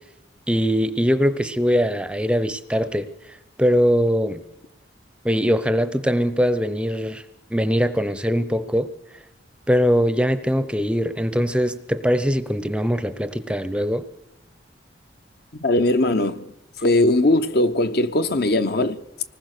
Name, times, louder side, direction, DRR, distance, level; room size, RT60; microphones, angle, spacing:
voice 1, 0.5-3.1 3.6-4.4 5.2-7.2 7.5-8.9 9.7-14.0, equal, 5° right, 0.7 m, -21 dB
voice 2, 15.6-16.5 16.8-19.0, left 2 dB, 55° left, 0.9 m, -20 dB
25.0 x 19.5 x 6.6 m
head